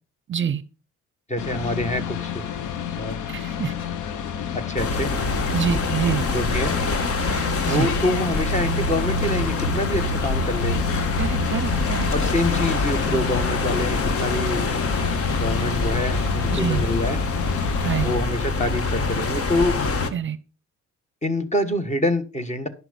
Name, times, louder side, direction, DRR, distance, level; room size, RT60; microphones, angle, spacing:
voice 1, 0.3-0.6 3.3-3.7 5.5-6.3 7.3-7.9 11.2-12.1 16.5-16.8 17.8-18.1 20.1-20.4, right 8 dB, 40° right, 0.7 m, -26 dB
voice 2, 1.3-2.3 2.9-3.2 4.5-5.1 6.3-6.8 7.6-10.8 12.1-14.6 15.4-17.2 18.0-19.8 21.2-22.7, left 1 dB, 25° left, 1.6 m, -26 dB
sound 1, 1.4-18.2, left 9 dB, 75° left, 1.0 m, -30 dB
sound 2, 4.8-20.1, left 3 dB, 50° left, 1.4 m, -25 dB
11.0 x 6.0 x 5.4 m
cardioid pair, 90°, 30 cm